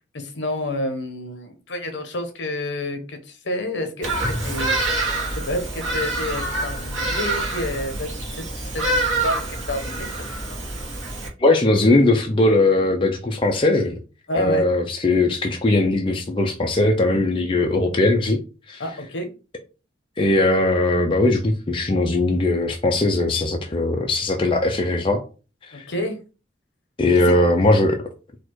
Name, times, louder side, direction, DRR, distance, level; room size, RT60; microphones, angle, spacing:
voice 1, 0.0-4.8 5.3-8.3 8.7-10.6 14.3-14.7 18.8-19.3 25.7-26.2 27.2-27.3, left 1 dB, 65° left, 6 dB, 1.0 m, -29 dB
Bird vocalization bird call bird song, 4.0-11.3, right 2 dB, 85° right, 1.4 m, -26 dB
voice 2, 11.4-14.0 14.3-18.4 18.7-18.8 20.2-25.2 25.7-25.8 27.0-28.0, left 2 dB, 25° left, 2 dB, 0.5 m, -19 dB
4.2 x 2.5 x 4.6 m, 0.34 s
head